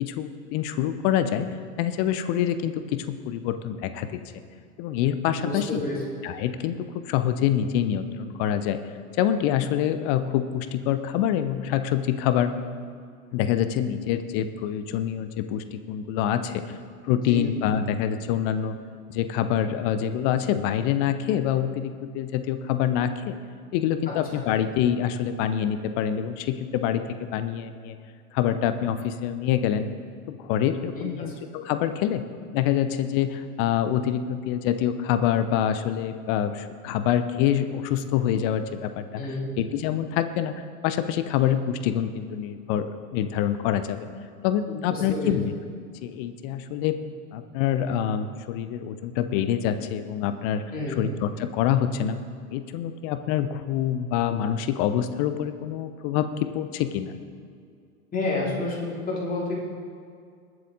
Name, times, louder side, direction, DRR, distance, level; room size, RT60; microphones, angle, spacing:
voice 1, 0.0-1.5 1.8-4.2 4.8-5.8 6.2-8.8 9.2-12.5 13.3-16.8 17.0-18.8 19.1-23.4 23.7-27.0 27.3-27.9 28.3-29.9 30.3-32.2 32.5-39.2 39.6-40.5 40.8-44.1 44.4-45.5 46.0-47.0 47.3-50.6 51.0-52.2 52.5-57.1, left 10 dB, 35° left, 10 dB, 0.9 m, -26 dB
voice 2, 5.4-6.0 17.1-17.4 24.3-24.4 31.0-31.3 39.2-39.5 44.7-45.3 50.7-51.0 58.1-59.5, left 2 dB, 20° left, -4 dB, 3.5 m, -30 dB
21.0 x 7.8 x 4.1 m, 2.2 s
figure-of-eight pair, 95°, 45 cm